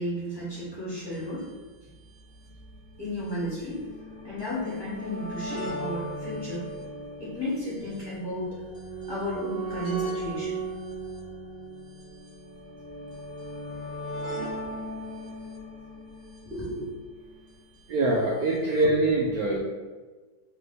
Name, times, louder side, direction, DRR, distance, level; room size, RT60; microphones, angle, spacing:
voice 1, 0.0-1.4 1.8-1.9 3.0-3.8 4.2-6.7 7.2-8.6 9.1-10.6 16.4-16.9, equal, 15° left, -10 dB, 1.3 m, -33 dB
sound 1, 1.4-1.5 2.3-17.6 18.6-18.7 18.8-18.9, right 1 dB, 30° right, 1.0 m, -37 dB
voice 2, 17.9-19.6, right 2 dB, 85° right, -2 dB, 0.8 m, -24 dB
3.3 x 3.1 x 3.9 m, 1.3 s
omnidirectional pair, 2.1 m